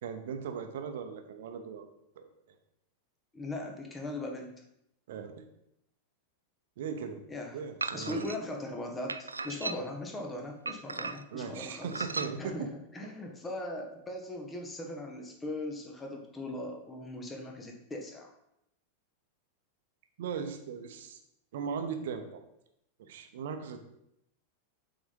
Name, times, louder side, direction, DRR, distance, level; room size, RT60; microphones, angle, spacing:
voice 1, 0.0-2.3 5.1-5.5 6.8-7.2 7.5-8.3 11.3-12.7 13.0-13.1 20.2-21.2 21.5-22.4 23.0-23.9, right 6 dB, 55° right, 6 dB, 1.0 m, -38 dB
voice 2, 3.3-4.5 7.3-7.6 7.9-12.1 12.4-18.3, left 1 dB, 15° left, 2 dB, 1.5 m, -39 dB
sound 1, 7.8-8.4 9.1-10.0 10.7-11.4 11.9-12.3, right 3 dB, 80° right, 0.3 m, -36 dB
7.9 x 4.1 x 5.4 m, 0.79 s
figure-of-eight pair, 90°, 0 cm